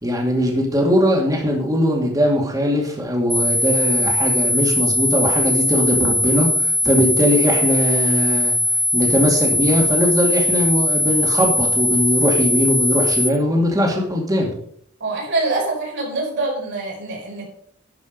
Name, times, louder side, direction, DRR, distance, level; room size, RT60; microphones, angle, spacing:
voice 1, 0.0-8.5 8.9-14.5, equal, 15° right, -1 dB, 2.4 m, -20 dB
sound 1, 3.3-13.3, left 1 dB, ahead, 1.1 m, -20 dB
voice 2, 15.0-17.5, right 2 dB, 55° right, -3 dB, 5.2 m, -24 dB
12.0 x 6.4 x 5.3 m, 0.65 s
head